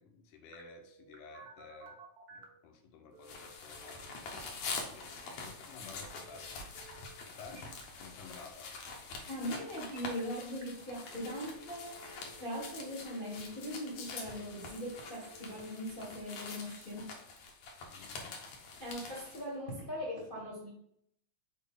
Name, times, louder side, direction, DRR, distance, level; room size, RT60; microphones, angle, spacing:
voice 1, 0.0-2.0 2.3-4.0 4.9-6.7 7.3-8.8 17.9-18.4, left 4 dB, 85° left, 2.5 m, -53 dB
Telephone, 0.5-2.6 3.1-4.1 6.1-7.1 7.4-7.8 9.5-10.2 10.6-10.7 11.1-16.1, right 2 dB, 75° right, 0.8 m, -56 dB
sound 1, 3.2-19.5, left 4 dB, 70° left, 2.3 m, -45 dB
voice 2, 9.3-17.1 18.8-20.7, equal, 50° left, 0.6 m, -40 dB
6.1 x 4.3 x 3.6 m
omnidirectional pair, 3.6 m